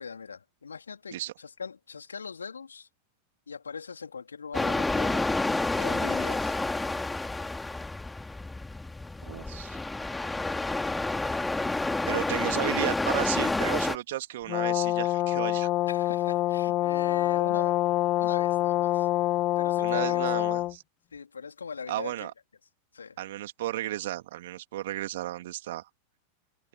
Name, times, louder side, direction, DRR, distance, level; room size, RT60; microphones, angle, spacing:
voice 1, 0.0-2.9 3.5-5.3 5.8-6.6 15.9-19.1 19.6-20.5 21.1-22.3 22.9-23.2, left 5 dB, 75° left, 3.7 m, -41 dB
sound 1, 4.5-14.0, left 2 dB, 5° left, 2.4 m, -29 dB
voice 2, 9.2-9.8 12.1-15.7 19.8-20.6 21.9-22.3 23.2-25.9, right 15 dB, 55° right, 3.2 m, -33 dB
Brass instrument, 14.5-20.7, left 16 dB, 35° left, 0.4 m, -26 dB
figure-of-eight pair, 90°, 0 cm